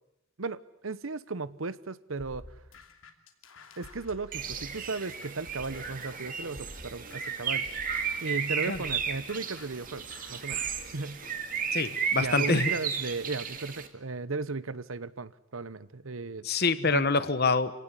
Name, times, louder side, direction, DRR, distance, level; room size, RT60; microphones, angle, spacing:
voice 1, 0.4-2.6 3.8-7.7 8.2-10.6 10.9-11.2 12.2-16.5 16.8-17.1, right 3 dB, 80° right, 16 dB, 1.0 m, -36 dB
sound 1, 2.2-6.2 6.6-10.9, left 2 dB, 75° left, 2.8 m, -50 dB
Bird, 4.3-13.9, right 6 dB, 40° right, 2.1 m, -34 dB
voice 2, 11.7-12.7 16.4-17.7, left 4 dB, 50° left, 13 dB, 1.3 m, -26 dB
26.5 x 18.0 x 9.9 m, 0.87 s
head